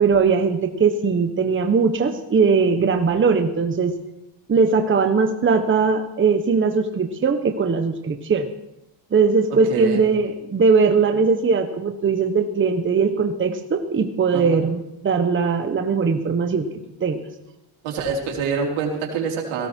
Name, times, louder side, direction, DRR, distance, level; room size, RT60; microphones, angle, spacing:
voice 1, 0.0-3.9 4.5-8.5 9.1-16.7 17.0-17.2, right 5 dB, 25° right, 6 dB, 1.2 m, -20 dB
voice 2, 9.5-10.0 14.3-14.6 17.8-19.7, right 5 dB, 90° right, 0 dB, 4.3 m, -26 dB
18.0 x 17.5 x 4.6 m, 0.87 s
cardioid pair, 135°, 48 cm